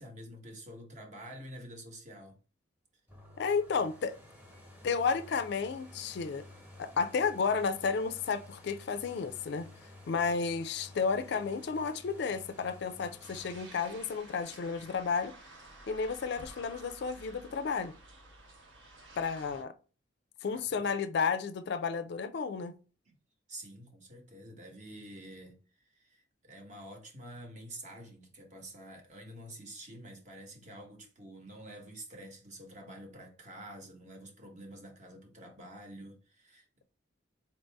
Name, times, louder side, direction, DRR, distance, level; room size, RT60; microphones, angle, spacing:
voice 1, 0.0-2.4 20.5-20.9 23.1-23.2 23.5-36.8, right 1 dB, 40° right, 1.0 m, -48 dB
sound 1, 3.1-16.8 17.3-17.4, left 1 dB, 10° right, 0.9 m, -54 dB
voice 2, 3.4-4.2 4.8-6.4 6.8-9.7 10.1-15.3 15.9-17.9 19.2-19.7 20.4-22.8, left 5 dB, 60° left, 0.3 m, -32 dB
sound 2, 13.2-19.6, right 2 dB, 70° right, 1.0 m, -52 dB
4.2 x 2.6 x 3.3 m
head